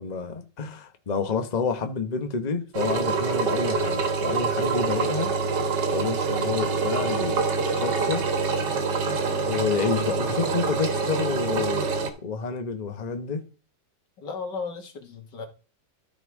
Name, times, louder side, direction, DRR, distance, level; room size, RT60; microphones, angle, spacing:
voice 1, 0.0-5.3 5.9-7.4 7.7-8.2 9.5-13.4, left 5 dB, 30° left, 1.0 m, -29 dB
Engine, 2.7-12.1, right 4 dB, 75° right, 1.9 m, -26 dB
voice 2, 14.2-15.5, left 4 dB, 85° left, 2.4 m, -35 dB
13.0 x 4.5 x 4.8 m
omnidirectional pair, 1.9 m